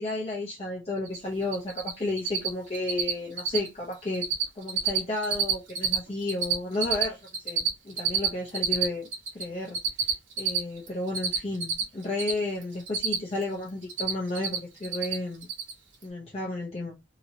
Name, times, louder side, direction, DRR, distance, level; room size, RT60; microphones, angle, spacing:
voice 1, 0.0-4.3 4.6-7.2 7.4-9.1 9.3-9.8 10.4-15.5 16.0-16.9, left 2 dB, 30° left, 0.7 m, -32 dB
Cricket, 1.1-1.2 1.4-1.9 2.2-2.5 2.7-3.1 3.4-3.7 3.9-4.4 4.7-6.0 6.2-9.4 9.7-12.3 12.6-13.4 13.7-14.6 14.8-15.2 15.4-15.7, right 7 dB, 90° right, 1.1 m, -27 dB
2.9 x 2.7 x 2.6 m
head